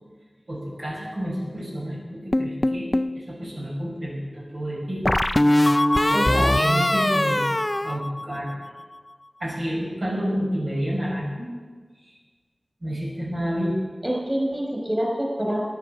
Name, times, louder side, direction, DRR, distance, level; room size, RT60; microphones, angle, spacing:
voice 1, 0.5-5.0 6.1-7.4 7.8-8.5 9.4-11.5 12.8-13.8, equal, 80° right, -5 dB, 5.3 m, -29 dB
sound 1, 2.3-3.2 5.0-8.7, left 1 dB, 25° left, 0.3 m, -21 dB
voice 2, 6.1-6.9 14.0-15.6, equal, 25° right, 0 dB, 4.7 m, -26 dB
13.0 x 10.0 x 7.0 m, 1.4 s
wide cardioid pair, 50°, 0 cm